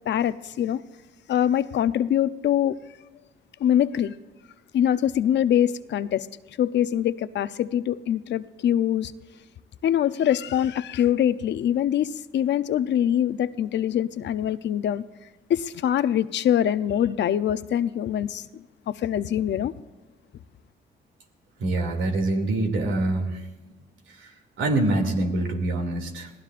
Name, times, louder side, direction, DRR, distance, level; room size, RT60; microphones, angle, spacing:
voice 1, 0.1-0.8 1.3-2.8 3.6-4.1 4.7-6.3 6.6-9.1 9.8-15.0 15.5-19.7, left 10 dB, 65° left, 13 dB, 0.6 m, -24 dB
voice 2, 21.6-23.5 24.1-26.3, right 2 dB, 75° right, 3 dB, 2.6 m, -25 dB
27.0 x 17.5 x 2.5 m, 1.2 s
cardioid pair, 90°, 20 cm